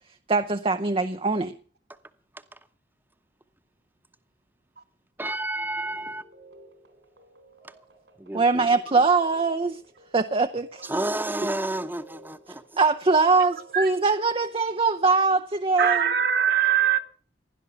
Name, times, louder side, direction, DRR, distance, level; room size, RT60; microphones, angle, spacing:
voice 1, 0.3-1.5 8.3-9.8 10.1-10.8 11.4-11.5 12.8-16.1, right 4 dB, 30° right, 0.7 m, -22 dB
voice 2, 5.2-6.2 8.2-8.7 10.8-12.6, right 1 dB, 10° right, 1.0 m, -30 dB
sound 1, 5.7-14.8, right 1 dB, 80° right, 3.4 m, -53 dB
voice 3, 15.8-17.0, right 9 dB, 60° right, 1.5 m, -22 dB
16.5 x 12.0 x 6.8 m
head